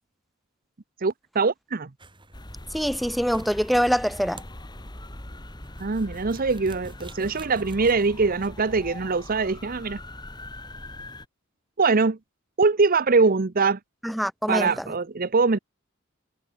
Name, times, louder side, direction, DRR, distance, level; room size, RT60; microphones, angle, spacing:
voice 1, 1.0-1.9 5.8-10.0 11.8-12.2 12.6-13.8 14.5-15.6, right 4 dB, 45° right, 0.8 m, -23 dB
sound 1, 2.0-8.5, right 2 dB, 25° right, 5.6 m, -48 dB
sound 2, 2.3-11.3, left 1 dB, 20° left, 2.2 m, -41 dB
voice 2, 2.7-4.4 14.0-14.8, equal, ahead, 1.4 m, -24 dB
head